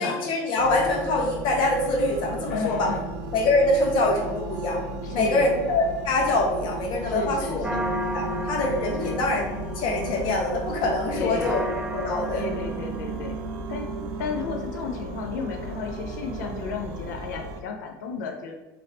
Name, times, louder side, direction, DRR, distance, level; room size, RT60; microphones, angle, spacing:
voice 1, 0.0-2.9 3.3-4.8 5.1-7.7 8.1-11.6 11.9-12.4, left 2 dB, 55° left, -1 dB, 0.9 m, -24 dB
sound 1, 0.6-17.6, right 2 dB, 70° right, 0.4 m, -35 dB
voice 2, 2.5-3.1 5.0-5.5 7.1-7.9 9.0-9.2 11.2-11.6 12.3-13.4 13.7-18.5, left 4 dB, 85° left, 2 dB, 0.5 m, -33 dB
sound 2, 7.6-13.8, equal, 5° right, 0.6 m, -33 dB
3.3 x 2.6 x 2.7 m, 1.1 s
supercardioid pair, 115°, 10 cm